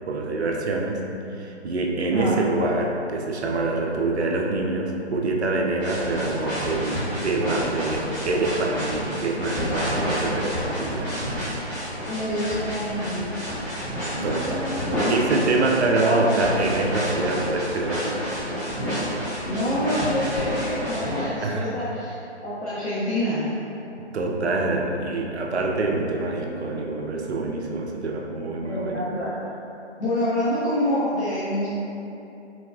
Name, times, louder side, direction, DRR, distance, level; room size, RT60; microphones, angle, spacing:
voice 1, 0.1-1.0 1.3-11.2 13.3-13.8 14.2-14.7 15.1-18.2 21.4-21.7 24.0-29.0, right 2 dB, 70° right, 0 dB, 0.5 m, -25 dB
sound 1, 5.8-21.2, equal, 15° left, 0.7 m, -29 dB
voice 2, 12.1-13.3 14.1-15.2 15.9-16.4 19.4-23.5 28.6-29.3 30.0-31.7, left 1 dB, 75° left, -12 dB, 0.9 m, -27 dB
3.9 x 2.2 x 2.3 m, 2.8 s
figure-of-eight pair, 150°, 34 cm